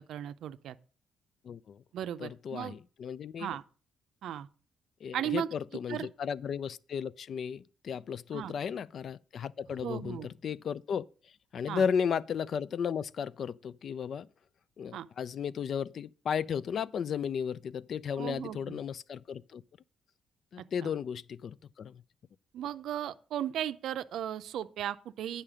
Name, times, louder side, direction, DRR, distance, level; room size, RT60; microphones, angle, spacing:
voice 1, 0.1-0.8 1.9-2.8 3.4-3.6 4.2-4.5 5.1-5.5 5.9-6.1 8.3-8.5 9.8-10.3 11.7-11.8 14.9-15.1 18.2-18.8 20.6-20.9 22.5-25.4, right 11 dB, 75° right, 0.5 m, -36 dB
voice 2, 1.4-1.8 2.2-3.5 5.0-11.0 11.5-14.3 14.8-19.6 20.5-22.0, left 7 dB, 60° left, 0.3 m, -34 dB
8.9 x 5.7 x 4.8 m
cardioid pair, 90°, 0 cm